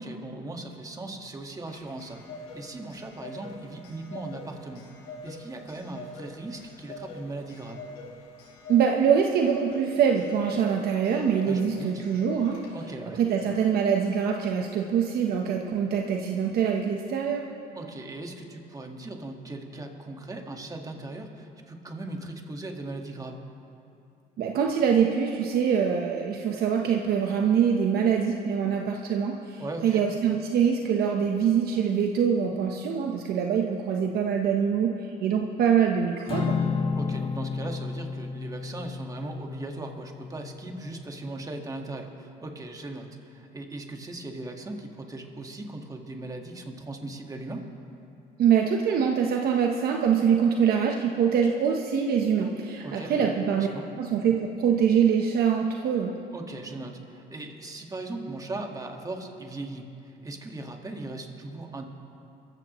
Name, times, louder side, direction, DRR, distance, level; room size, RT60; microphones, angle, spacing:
voice 1, 0.0-2.2 2.5-7.8 11.4-12.0 12.7-13.2 17.8-23.4 29.5-30.1 37.0-47.7 52.8-53.3 53.6-53.9 56.3-61.9, right 2 dB, 20° right, 3 dB, 1.7 m, -38 dB
Clock, 1.4-13.0, left 2 dB, 90° left, 4.4 m, -45 dB
voice 2, 8.7-12.6 13.2-17.4 24.4-36.6 48.4-53.7 54.0-56.1, right 7 dB, 65° right, 1 dB, 1.1 m, -24 dB
Acoustic guitar / Strum, 36.3-40.7, left 5 dB, 35° left, 1.9 m, -31 dB
27.0 x 15.0 x 3.1 m, 2.7 s
cardioid pair, 110°, 17 cm